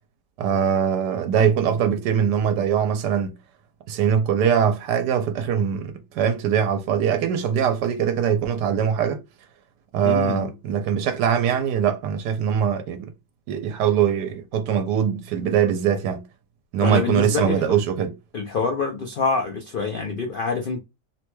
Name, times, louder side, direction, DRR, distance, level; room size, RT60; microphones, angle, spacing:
voice 1, 0.4-3.3 3.9-9.2 9.9-13.1 13.5-16.2 16.7-18.1, right 8 dB, 90° right, 1.2 m, -22 dB
voice 2, 10.0-10.5 16.8-17.7 18.3-20.8, left 4 dB, 85° left, 0.4 m, -26 dB
3.1 x 2.2 x 3.0 m
omnidirectional pair, 1.8 m